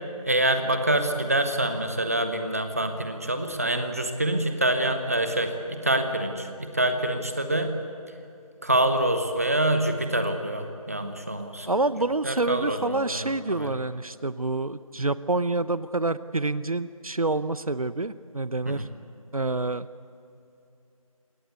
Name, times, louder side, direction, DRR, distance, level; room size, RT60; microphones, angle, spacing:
voice 1, 0.2-7.7 8.6-11.7 12.2-13.7 18.7-18.9, right 1 dB, 25° right, 7 dB, 1.1 m, -26 dB
voice 2, 11.7-18.9 19.3-19.9, right 2 dB, 70° right, 15 dB, 0.7 m, -27 dB
22.0 x 18.0 x 8.2 m, 2.7 s
figure-of-eight pair, 170°, 19 cm